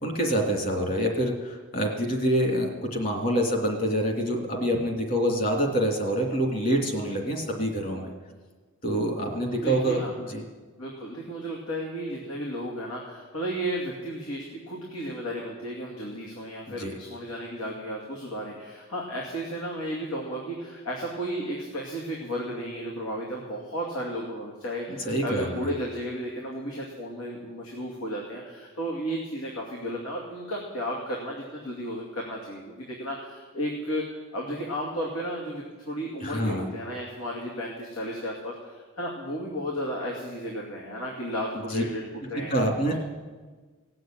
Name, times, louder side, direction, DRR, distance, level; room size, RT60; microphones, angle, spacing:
voice 1, 0.0-8.1 8.8-10.4 16.7-16.9 25.0-25.7 36.2-36.7 41.7-41.8 42.3-42.9, right 1 dB, 40° left, 2 dB, 2.7 m, -26 dB
voice 2, 9.4-10.1 10.8-42.0 42.3-42.6, equal, 80° left, -3 dB, 2.6 m, -33 dB
17.5 x 7.8 x 9.1 m, 1.4 s
head